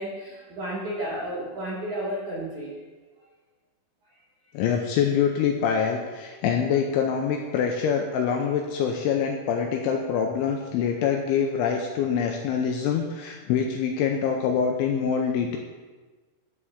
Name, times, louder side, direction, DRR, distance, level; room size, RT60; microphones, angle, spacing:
voice 1, 0.0-2.7, right 1 dB, 90° right, -6 dB, 1.6 m, -32 dB
voice 2, 4.5-15.6, left 7 dB, 85° left, 2 dB, 2.8 m, -25 dB
11.5 x 8.6 x 3.7 m, 1.3 s
omnidirectional pair, 6.0 m